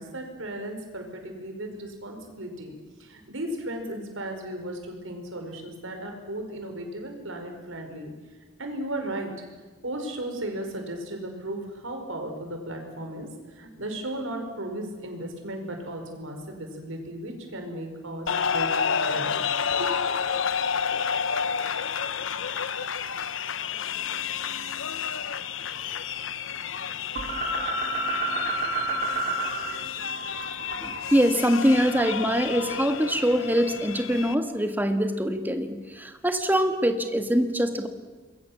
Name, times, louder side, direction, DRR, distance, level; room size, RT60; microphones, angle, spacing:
voice 1, 0.0-2.7 3.0-8.1 8.6-9.3 9.8-13.3 13.5-19.9, right 1 dB, 70° right, 4 dB, 5.2 m, -35 dB
sound 1, 18.3-34.3, left 7 dB, 65° left, 0.9 m, -30 dB
sound 2, 27.2-29.8 30.0-32.3, right 2 dB, 40° right, 4.5 m, -30 dB
voice 2, 30.8-37.9, equal, 10° right, 6 dB, 1.7 m, -24 dB
27.0 x 21.5 x 7.4 m, 1.3 s
head